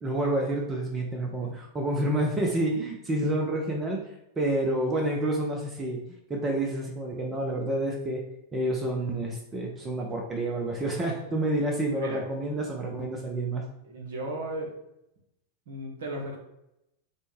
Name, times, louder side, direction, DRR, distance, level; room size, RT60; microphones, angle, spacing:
voice 1, 0.0-4.1 4.4-6.0 6.3-8.2 8.5-13.6, right 1 dB, 20° right, 0 dB, 0.6 m, -29 dB
voice 2, 13.8-14.8 15.7-16.4, right 1 dB, 60° right, 0 dB, 1.0 m, -35 dB
4.3 x 2.2 x 3.1 m, 0.84 s
figure-of-eight pair, 90°, 0 cm